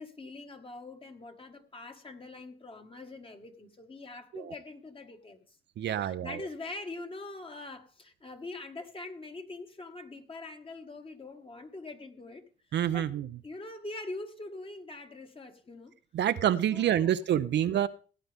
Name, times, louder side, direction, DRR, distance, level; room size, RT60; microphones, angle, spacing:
voice 1, 0.0-5.6 5.8-12.4 12.9-13.1 13.4-15.9 16.7-17.2, left 2 dB, 25° left, 1.7 m, -43 dB
voice 2, 5.8-6.5 12.7-13.3 16.1-17.9, right 10 dB, 60° right, 0.7 m, -27 dB
17.0 x 9.4 x 3.5 m
cardioid pair, 90°, 20 cm